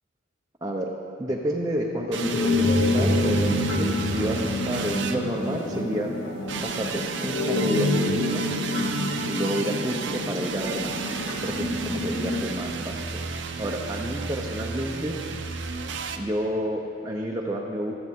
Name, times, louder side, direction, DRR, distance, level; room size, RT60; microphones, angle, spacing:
voice 1, 0.6-0.9 1.2-6.1 6.6-8.5 9.3-13.2 13.6-15.2 16.1-17.9, equal, 15° right, -2 dB, 0.7 m, -30 dB
sound 1, 2.1-12.4, left 1 dB, 80° left, 2.2 m, -27 dB
sound 2, 2.1-5.8 6.5-16.2, right 4 dB, 60° right, 0.8 m, -33 dB
25.0 x 8.8 x 3.7 m, 2.7 s
head